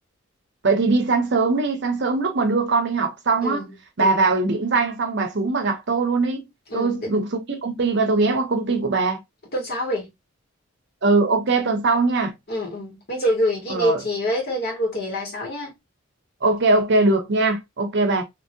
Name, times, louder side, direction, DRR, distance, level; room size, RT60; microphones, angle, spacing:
voice 1, 0.6-3.7 4.0-6.5 6.7-9.2 11.0-12.3 13.7-14.0 16.4-18.2, right 3 dB, 55° right, 0.7 m, -21 dB
voice 2, 6.7-7.1 9.5-10.1 12.5-15.7, equal, 50° left, 1.6 m, -26 dB
2.8 x 2.7 x 2.7 m
head